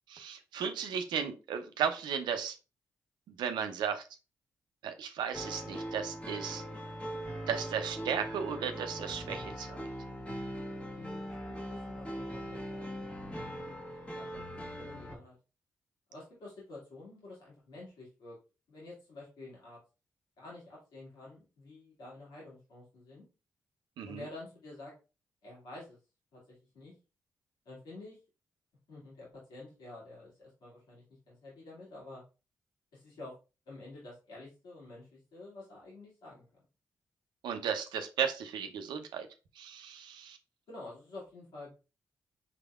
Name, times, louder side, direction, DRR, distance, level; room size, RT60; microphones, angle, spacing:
voice 1, 0.1-2.6 3.4-4.0 4.8-6.6 7.5-9.8 24.0-24.2 37.4-39.3 39.6-40.4, right 7 dB, 80° right, 7 dB, 0.6 m, -35 dB
sound 1, 5.3-15.2, equal, 15° left, 1.2 m, -41 dB
voice 2, 10.9-15.3 16.1-18.4 18.7-19.8 20.4-23.2 24.1-24.9 25.4-26.0 26.3-26.9 27.7-28.2 28.9-32.2 32.9-33.4 33.7-36.5 40.7-41.7, left 2 dB, 75° left, -6 dB, 2.2 m, -49 dB
5.7 x 3.5 x 2.4 m, 0.31 s
hypercardioid pair, 40°, 8 cm